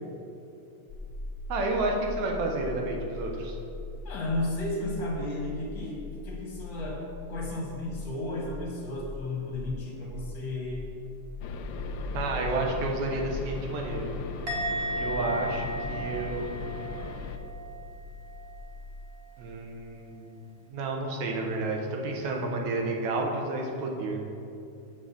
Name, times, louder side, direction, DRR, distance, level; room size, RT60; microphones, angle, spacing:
sound 1, 0.9-18.6, left 2 dB, 20° right, 1.9 m, -42 dB
voice 1, 1.5-3.6 12.1-14.1 14.9-16.6 19.4-20.4 20.7-24.2, right 2 dB, 75° right, 1 dB, 2.4 m, -31 dB
voice 2, 4.0-7.0 7.3-10.8, left 2 dB, 45° left, -2 dB, 2.0 m, -33 dB
sound 2, 11.4-17.4, left 4 dB, 80° left, 1.4 m, -37 dB
Musical instrument, 14.5-17.9 18.1-18.5, right 1 dB, 45° right, 0.8 m, -35 dB
7.8 x 6.4 x 6.9 m, 2.7 s
omnidirectional pair, 3.4 m